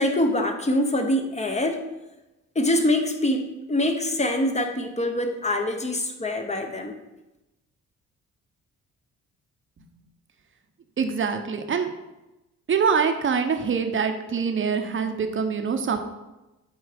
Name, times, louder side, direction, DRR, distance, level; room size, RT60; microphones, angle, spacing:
voice 1, 0.0-1.8 2.5-6.9, left 1 dB, 20° left, 4 dB, 1.2 m, -24 dB
voice 2, 11.0-11.9 12.7-16.0, right 6 dB, 40° right, 6 dB, 1.0 m, -24 dB
8.1 x 4.4 x 5.2 m, 1.0 s
cardioid pair, 90°, 30 cm